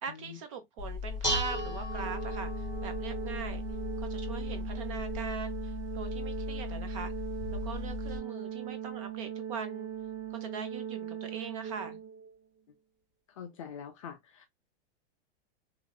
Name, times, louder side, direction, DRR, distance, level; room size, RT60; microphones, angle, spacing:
voice 1, 0.0-3.6 4.0-7.1 7.6-9.9 10.3-12.0, right 5 dB, 30° right, 0.4 m, -42 dB
Dishes pots and pans, 0.8-8.2, left 3 dB, 10° right, 1.3 m, -36 dB
Organ, 1.5-12.4, right 9 dB, 80° right, 1.9 m, -39 dB
voice 2, 13.4-14.5, left 7 dB, 30° left, 0.4 m, -44 dB
3.0 x 2.6 x 2.2 m
supercardioid pair, 175°, 32 cm